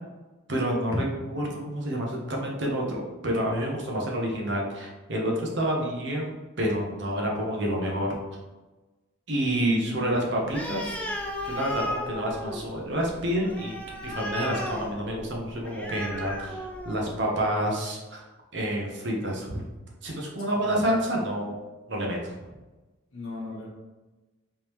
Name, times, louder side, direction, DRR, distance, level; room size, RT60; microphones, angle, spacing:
voice 1, 0.5-8.2 9.3-11.0 11.4-13.7 14.0-18.2 18.5-19.6 20.0-21.5 21.9-22.3, equal, 55° right, -1 dB, 0.8 m, -28 dB
voice 2, 9.5-10.1 20.5-20.8 23.1-23.7, left 3 dB, 90° left, -4 dB, 1.3 m, -38 dB
Animal, 10.5-17.2, left 1 dB, 5° left, 0.3 m, -35 dB
3.6 x 3.2 x 3.0 m, 1.2 s
head